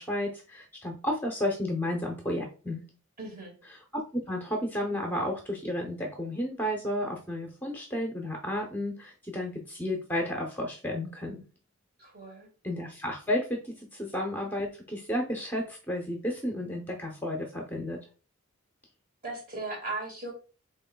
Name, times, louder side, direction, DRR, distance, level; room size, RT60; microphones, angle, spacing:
voice 1, 0.0-2.8 3.7-11.4 12.6-18.0, left 1 dB, 10° left, 2 dB, 0.7 m, -32 dB
voice 2, 3.2-3.5 12.0-12.5 19.2-20.3, right 2 dB, 40° right, 0 dB, 1.8 m, -37 dB
6.0 x 3.9 x 2.2 m, 0.36 s
head